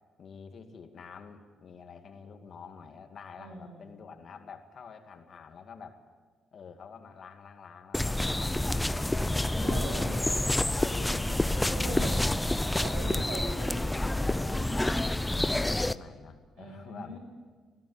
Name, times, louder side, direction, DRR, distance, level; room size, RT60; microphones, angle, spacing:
voice 1, 0.2-6.0 6.5-9.8 10.1-10.3 10.6-11.4 11.8-12.7 13.1-13.4 14.5-15.0 15.3-17.2, left 5 dB, 55° left, 5 dB, 2.3 m, -48 dB
voice 2, 3.4-3.9 9.6-10.1 11.7-12.5 12.8-13.8 14.2-14.7 16.6-17.2, right 2 dB, 85° right, 4 dB, 6.3 m, -41 dB
sound 1, 7.9-15.9, left 1 dB, 10° left, 0.6 m, -28 dB
20.5 x 16.5 x 9.8 m, 1.5 s
cardioid pair, 90°, 0 cm